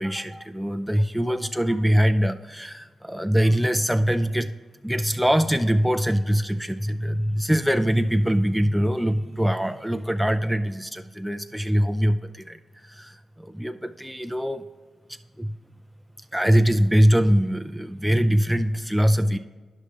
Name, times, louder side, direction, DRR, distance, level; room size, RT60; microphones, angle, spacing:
voice 1, 0.0-4.5 4.8-14.7 15.1-15.5 16.3-19.4, equal, ahead, 7 dB, 0.4 m, -23 dB
9.8 x 6.3 x 3.3 m, 1.4 s
supercardioid pair, 50°, 0 cm